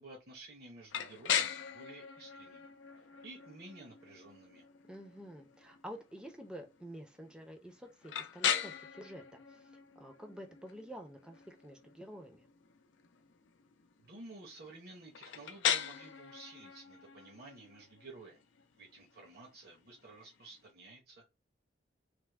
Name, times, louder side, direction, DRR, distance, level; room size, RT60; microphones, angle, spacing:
voice 1, 0.0-2.7 3.0-4.6 14.0-18.4 18.8-21.3, right 2 dB, 55° right, 0.8 m, -53 dB
sound 1, 0.9-20.7, left 8 dB, 80° left, 0.4 m, -40 dB
voice 2, 4.8-12.5, equal, 5° right, 0.5 m, -49 dB
3.4 x 2.1 x 3.2 m
head